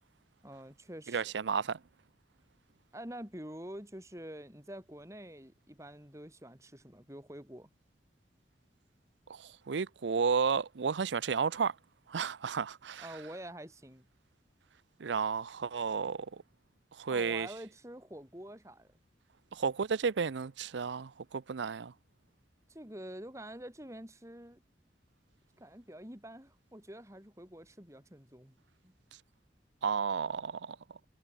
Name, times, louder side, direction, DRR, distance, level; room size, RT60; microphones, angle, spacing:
voice 1, 0.4-1.3 2.9-7.7 13.0-14.1 17.1-18.9 22.7-24.6 25.6-28.5 28.8-28.9, right 1 dB, 15° right, 4.0 m, -47 dB
voice 2, 1.1-1.8 9.3-11.8 12.1-13.1 15.0-16.3 16.9-17.5 19.5-21.9 29.8-30.8, right 5 dB, 85° right, 0.5 m, -32 dB
head